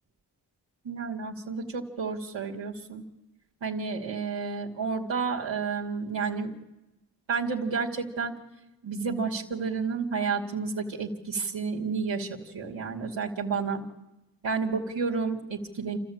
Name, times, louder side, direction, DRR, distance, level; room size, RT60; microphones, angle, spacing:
voice 1, 0.8-3.0 3.6-6.6 7.3-8.3 8.8-13.8 14.4-16.0, right 5 dB, 85° right, -2 dB, 2.8 m, -31 dB
29.0 x 13.5 x 8.8 m, 1.0 s
cardioid pair, 45°, 44 cm